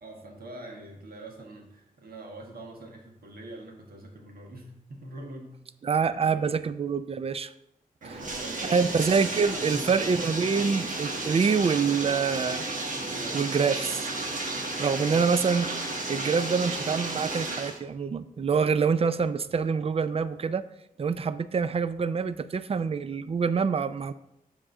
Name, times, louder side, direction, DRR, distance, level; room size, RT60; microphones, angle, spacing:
voice 1, 0.0-5.6 6.1-6.5 8.0-8.9 9.3-10.0 13.0-13.4, right 1 dB, 85° right, 1 dB, 1.6 m, -44 dB
voice 2, 5.8-7.5 8.7-12.6 13.3-14.1 14.8-20.6 21.0-24.1, right 5 dB, 40° right, 14 dB, 0.4 m, -26 dB
Bathtub (filling or washing), 8.0-17.8, right 2 dB, 60° right, 1.4 m, -33 dB
7.5 x 3.7 x 6.4 m, 0.82 s
wide cardioid pair, 80°, 15 cm